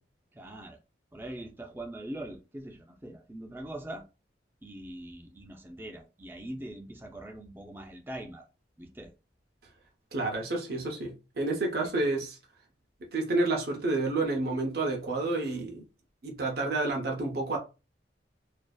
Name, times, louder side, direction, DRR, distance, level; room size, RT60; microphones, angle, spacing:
voice 1, 0.3-0.8 1.1-4.1 4.6-8.5 8.8-9.1 11.8-11.9, right 1 dB, 10° right, 0.4 m, -42 dB
voice 2, 10.1-12.4 13.1-15.8 16.2-17.6, right 2 dB, 55° right, 0.6 m, -29 dB
2.5 x 2.4 x 2.2 m
head